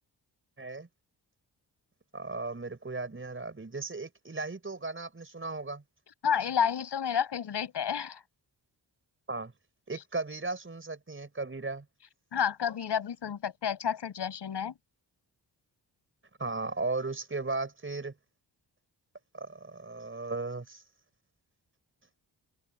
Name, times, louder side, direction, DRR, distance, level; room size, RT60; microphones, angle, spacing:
voice 1, 0.6-0.9 2.1-5.8 9.3-9.5 9.9-11.8 16.4-18.1 19.3-20.8, right 3 dB, 30° right, 6.0 m, -36 dB
voice 2, 6.2-8.2 12.3-14.7, left 8 dB, 80° left, 7.7 m, -30 dB
open air
cardioid pair, 75°, 40 cm